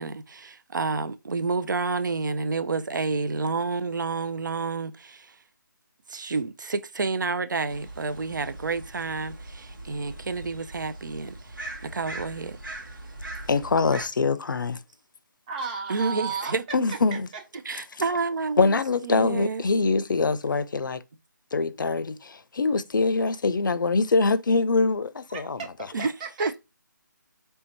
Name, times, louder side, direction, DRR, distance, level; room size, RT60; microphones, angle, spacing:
voice 1, 0.0-5.4 6.1-12.6 15.9-16.6 17.6-19.6 25.9-26.1 26.4-26.6, right 4 dB, 70° right, 0.6 m, -29 dB
sound 1, 7.7-14.1, right 2 dB, 85° right, 1.6 m, -41 dB
voice 2, 13.5-14.8 16.7-17.3 18.6-21.0 21.5-25.6, left 3 dB, 75° left, 0.5 m, -24 dB
voice 3, 15.5-16.6 16.9-17.2 25.3-26.6, right 6 dB, 25° right, 0.9 m, -34 dB
3.4 x 2.7 x 4.4 m
figure-of-eight pair, 160°, 11 cm